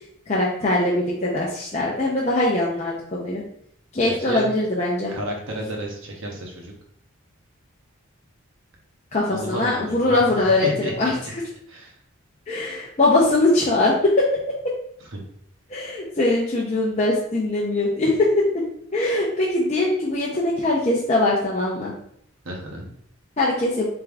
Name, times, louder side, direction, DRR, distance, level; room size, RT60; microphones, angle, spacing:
voice 1, 0.3-3.4 3.9-5.1 9.1-11.1 12.5-14.4 15.7-18.5 18.9-21.9 23.4-23.9, left 2 dB, 30° left, -5 dB, 0.6 m, -21 dB
voice 2, 5.1-6.7 9.3-11.3 11.7-11.9 15.1-15.2 22.4-22.9, right 1 dB, 60° right, -1 dB, 1.1 m, -32 dB
3.7 x 3.5 x 3.4 m, 0.67 s
head